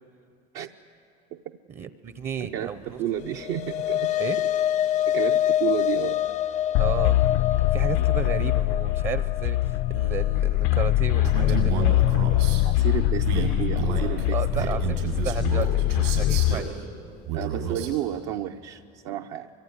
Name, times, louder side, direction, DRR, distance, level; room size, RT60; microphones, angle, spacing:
voice 1, 1.8-3.0 4.2-4.4 6.8-7.2 7.7-12.0 14.3-16.8, right 7 dB, 30° right, 12 dB, 0.7 m, -33 dB
voice 2, 2.4-2.7 3.0-4.1 5.0-6.2 12.6-14.7 17.3-19.5, right 12 dB, 65° right, 4 dB, 0.8 m, -31 dB
sound 1, 3.2-11.7, left 11 dB, 35° left, 0.5 m, -27 dB
sound 2, 6.7-16.5, left 15 dB, 75° left, 0.6 m, -23 dB
Male speech man speaking, 11.2-12.6 13.2-16.7 17.2-18.0, right 7 dB, 85° right, 7.6 m, -30 dB
24.5 x 23.0 x 9.7 m, 2.5 s
cardioid pair, 145°, 21 cm